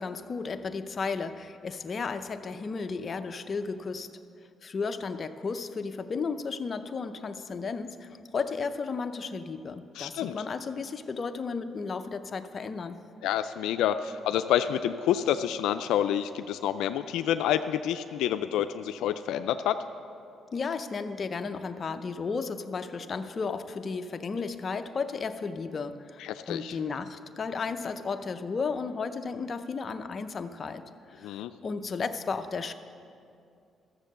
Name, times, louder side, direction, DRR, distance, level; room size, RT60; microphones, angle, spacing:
voice 1, 0.0-4.1 4.6-13.0 20.5-32.7, left 4 dB, 40° left, 9 dB, 0.6 m, -34 dB
voice 2, 10.0-10.4 13.2-19.8 26.2-26.7 31.2-31.5, left 10 dB, 90° left, 9 dB, 0.3 m, -28 dB
13.5 x 7.3 x 6.6 m, 2.5 s
cardioid pair, 90°, 0 cm